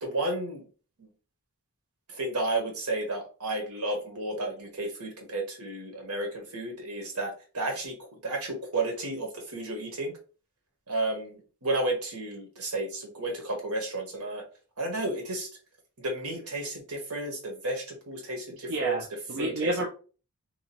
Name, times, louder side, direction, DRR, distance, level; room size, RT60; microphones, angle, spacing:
voice 1, 0.0-0.6 1.0-1.1 2.1-10.1 10.9-14.4 14.8-15.5 16.0-19.0 19.4-19.7, right 2 dB, 80° right, 2 dB, 1.0 m, -32 dB
voice 2, 18.7-19.9, right 1 dB, 60° right, 0 dB, 0.5 m, -30 dB
2.9 x 2.3 x 2.8 m, 0.36 s
head